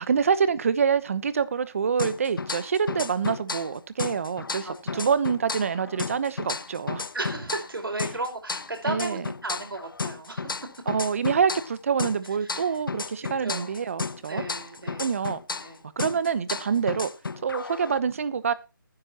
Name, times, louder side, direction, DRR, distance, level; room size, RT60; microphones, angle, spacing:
voice 1, 0.0-7.0 8.9-9.2 10.9-14.4 15.0-15.4 16.0-17.1 17.4-18.5, right 6 dB, 40° right, 1.0 m, -26 dB
sound 1, 2.0-3.7 4.0-7.7 8.0-11.7 12.0-15.7 16.0-18.0, left 4 dB, 75° left, 1.0 m, -33 dB
voice 2, 4.6-5.1 7.1-10.7 12.4-12.5 13.4-13.7 14.3-15.2 15.6-15.9, right 2 dB, 90° right, 4.9 m, -35 dB
19.0 x 10.0 x 3.0 m
hypercardioid pair, 165°, 11 cm